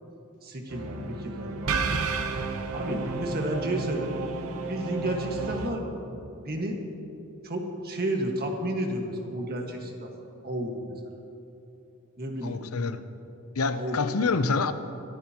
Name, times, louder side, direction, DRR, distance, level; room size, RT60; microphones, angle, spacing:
voice 1, 0.4-2.1 2.7-4.1 4.7-6.1 6.4-6.8 7.4-10.1 10.4-10.9 12.2-12.6 13.7-14.3, right 1 dB, 45° right, 2 dB, 1.7 m, -32 dB
sound 1, 0.7-5.7, right 4 dB, 80° right, 0.8 m, -32 dB
voice 2, 12.4-13.0 13.5-14.7, left 4 dB, 85° left, 11 dB, 0.7 m, -27 dB
23.5 x 13.5 x 2.9 m, 2.8 s
head